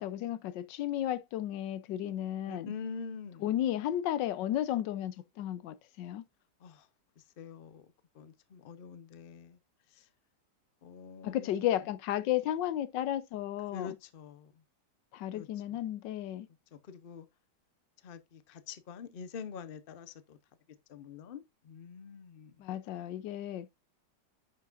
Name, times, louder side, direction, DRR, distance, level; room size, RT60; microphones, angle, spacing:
voice 1, 0.0-2.7 3.4-6.2 11.2-13.9 15.1-16.5 22.6-23.7, left 12 dB, 85° left, 1.3 m, -33 dB
voice 2, 2.5-3.5 6.6-6.9 7.2-7.8 8.1-9.6 9.9-10.1 10.8-11.7 13.7-14.5 15.3-15.8 16.7-17.3 18.0-20.4 20.9-22.5, left 6 dB, 45° left, 0.7 m, -45 dB
10.5 x 5.9 x 2.5 m
omnidirectional pair, 1.9 m